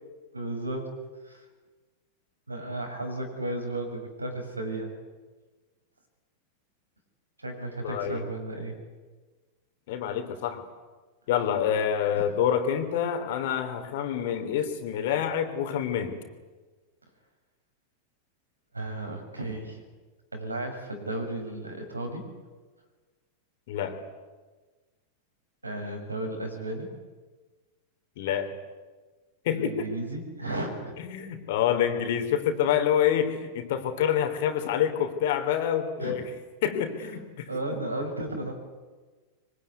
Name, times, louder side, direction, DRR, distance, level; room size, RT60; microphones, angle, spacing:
voice 1, 0.3-0.9 1.2-1.4 2.5-4.9 7.4-8.8 12.1-12.3 18.7-19.8 20.3-22.3 25.6-26.9 29.5-31.0 36.0-36.1 37.5-38.5, right 1 dB, 80° right, 4 dB, 6.4 m, -34 dB
voice 2, 7.8-8.3 9.9-10.6 11.3-16.2 23.7-24.0 28.2-28.5 29.4-29.9 31.0-36.3 36.6-37.8, left 9 dB, 55° left, 8 dB, 3.4 m, -27 dB
24.5 x 24.5 x 9.6 m, 1.3 s
figure-of-eight pair, 90°, 0 cm